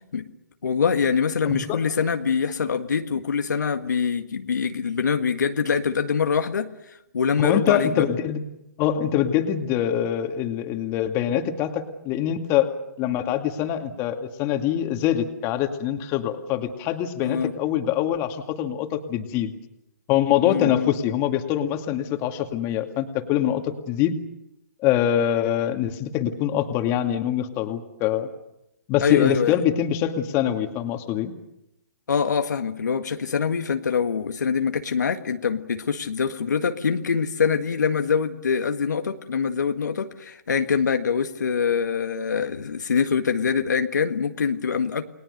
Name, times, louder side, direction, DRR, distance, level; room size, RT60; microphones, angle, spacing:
voice 1, 0.6-6.7 7.1-8.1 17.2-17.5 20.4-20.9 29.0-29.6 32.1-45.0, left 6 dB, 80° left, 6 dB, 1.8 m, -24 dB
voice 2, 1.5-1.8 7.4-8.4 8.8-12.7 13.0-19.5 20.1-24.2 24.8-28.3 28.9-31.3, left 10 dB, 30° left, 5 dB, 2.3 m, -24 dB
29.5 x 20.5 x 6.7 m, 0.87 s
hypercardioid pair, 140°, 10 cm